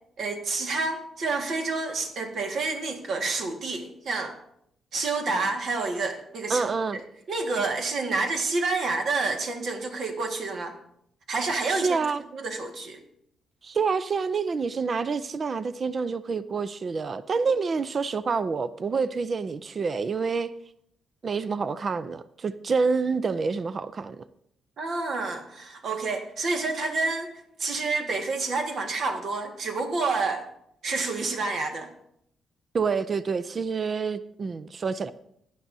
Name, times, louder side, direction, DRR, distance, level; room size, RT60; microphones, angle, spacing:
voice 1, 0.2-4.3 4.9-6.7 7.3-10.7 11.3-12.0 12.3-13.0 24.8-27.3 27.6-30.4 30.8-31.9, right 3 dB, 55° right, 1.7 m, -28 dB
voice 2, 6.5-7.0 11.7-12.2 13.6-20.5 21.2-24.2 32.7-35.1, right 5 dB, 35° right, 0.4 m, -27 dB
16.5 x 11.0 x 2.7 m
cardioid pair, 135°, 0 cm